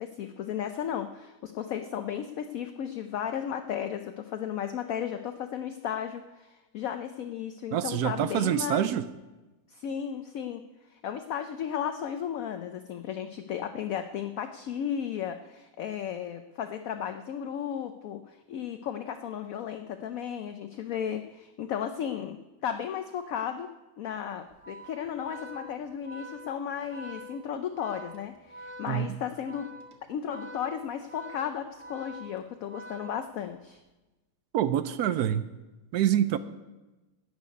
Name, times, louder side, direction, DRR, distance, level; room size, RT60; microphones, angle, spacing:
voice 1, 0.0-8.9 9.7-10.6 10.9-23.7 24.0-29.7 30.1-33.8, left 9 dB, 70° left, 8 dB, 0.8 m, -34 dB
voice 2, 7.7-9.0 28.9-29.1 34.5-35.5 35.9-36.4, right 10 dB, 70° right, 13 dB, 1.0 m, -26 dB
Organ, 24.5-33.7, right 1 dB, 20° right, 1.2 m, -46 dB
12.5 x 6.7 x 9.4 m, 1.1 s
omnidirectional pair, 2.0 m